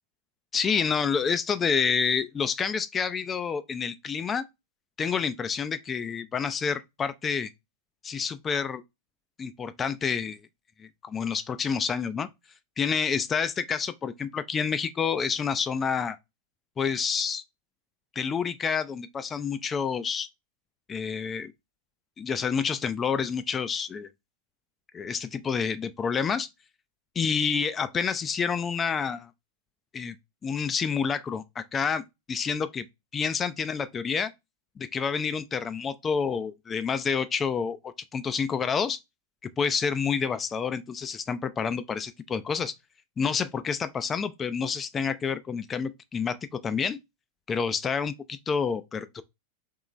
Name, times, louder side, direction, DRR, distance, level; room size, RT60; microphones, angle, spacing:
voice 1, 0.5-4.4 5.0-7.5 8.0-8.8 9.4-10.4 10.8-12.3 12.8-16.2 16.8-17.4 18.2-20.3 20.9-21.5 22.2-24.1 24.9-26.5 27.2-29.3 29.9-30.2 30.4-32.0 32.3-32.9 33.1-34.3 34.8-39.0 39.6-42.7 43.2-47.0 47.5-49.2, left 6 dB, 20° left, 0.3 m, -28 dB
3.7 x 2.9 x 3.1 m
figure-of-eight pair, 90°, 0 cm